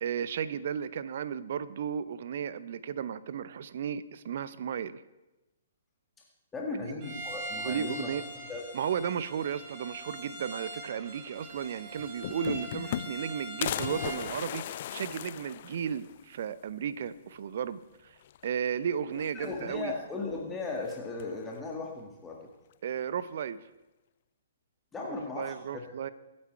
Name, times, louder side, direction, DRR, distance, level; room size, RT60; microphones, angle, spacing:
voice 1, 0.0-5.0 6.7-6.8 7.1-7.2 7.6-8.2 8.7-18.2 18.4-19.9 22.8-23.6 25.0-26.1, right 8 dB, 50° right, 16 dB, 0.7 m, -34 dB
voice 2, 6.5-8.2 8.5-8.6 19.3-22.5 24.9-25.8, left 3 dB, 10° left, -1 dB, 1.8 m, -37 dB
Bowed string instrument, 7.0-14.3, right 2 dB, 30° right, 3.1 m, -42 dB
sound 1, 11.6-11.7 12.0-13.3 13.6-16.2 16.6-16.7 17.0-17.1 18.2-18.7 19.1-19.8 20.8-21.4, left 12 dB, 45° left, 0.5 m, -37 dB
24.0 x 8.7 x 4.6 m, 1.0 s
figure-of-eight pair, 120°, 0 cm